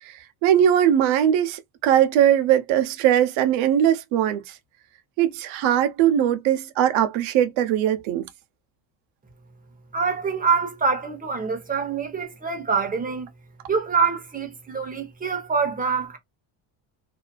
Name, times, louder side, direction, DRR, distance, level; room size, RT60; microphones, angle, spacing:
voice 1, 0.4-4.5 5.2-8.3, right 10 dB, 80° right, 0.7 m, -20 dB
voice 2, 9.9-13.3 13.7-16.2, right 5 dB, 20° right, 0.8 m, -25 dB
2.7 x 2.4 x 2.2 m
cardioid pair, 135°, 47 cm